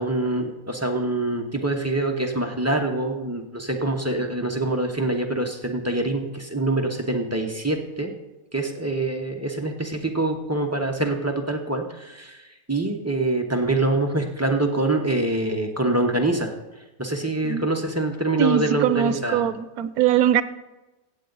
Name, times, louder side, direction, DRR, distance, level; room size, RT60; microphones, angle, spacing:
voice 1, 0.0-8.1 8.5-16.5 17.0-19.4, right 2 dB, 15° right, 2 dB, 0.7 m, -25 dB
voice 2, 18.4-20.4, right 10 dB, 90° right, 14 dB, 1.1 m, -21 dB
15.5 x 8.0 x 4.0 m, 1.1 s
omnidirectional pair, 1.5 m